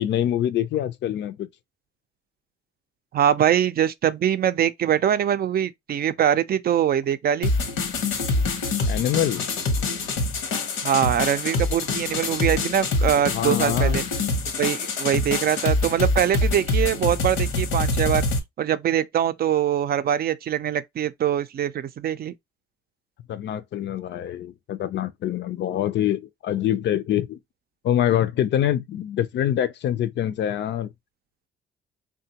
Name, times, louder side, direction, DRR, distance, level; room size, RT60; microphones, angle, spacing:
voice 1, 0.0-1.5 8.9-9.5 13.3-14.0 23.3-27.4 27.8-30.9, left 11 dB, 65° left, 0.5 m, -25 dB
voice 2, 3.1-7.5 10.8-14.0 14.6-18.3 18.6-22.3, right 10 dB, 50° right, 0.4 m, -23 dB
sound 1, 7.4-18.4, left 3 dB, 90° left, 0.9 m, -25 dB
3.6 x 2.2 x 2.8 m
cardioid pair, 90°, 20 cm